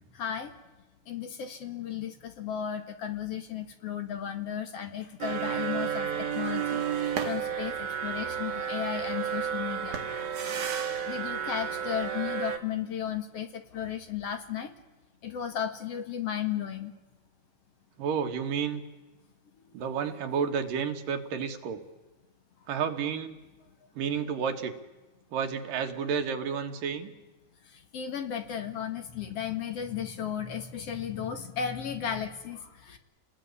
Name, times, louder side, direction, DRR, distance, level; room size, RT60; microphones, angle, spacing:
voice 1, 0.1-0.5 1.1-6.1 6.3-10.0 11.1-14.7 15.2-16.9 27.7-33.0, left 9 dB, 55° left, 7 dB, 2.5 m, -34 dB
sound 1, 5.2-12.6, right 8 dB, 70° right, 3.5 m, -32 dB
voice 2, 18.0-18.8 19.7-21.8 22.7-23.4 24.0-24.7 25.3-27.1, right 7 dB, 85° right, 6 dB, 3.4 m, -31 dB
29.0 x 20.0 x 9.8 m, 1.1 s
omnidirectional pair, 3.7 m